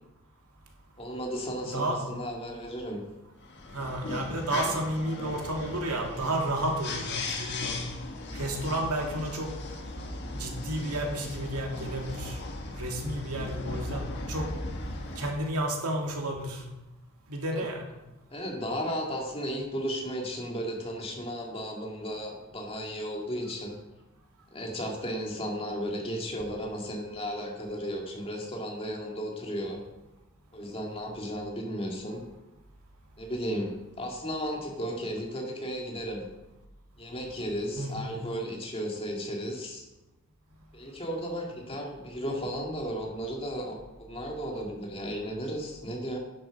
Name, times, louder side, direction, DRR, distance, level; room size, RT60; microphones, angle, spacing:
voice 1, 1.0-3.0 17.5-17.6 18.3-23.8 24.5-29.8 30.5-32.2 33.2-36.2 37.0-39.9 40.7-46.2, equal, 25° left, 0 dB, 2.1 m, -34 dB
sound 1, 3.4-15.3, left 2 dB, 50° left, 1.5 m, -37 dB
voice 2, 3.7-7.8 8.3-9.5 10.3-12.4 12.8-14.5 15.2-16.6 17.3-17.9 37.8-38.1, right 1 dB, 85° right, 1 dB, 2.3 m, -31 dB
10.5 x 7.6 x 5.9 m, 1.0 s
head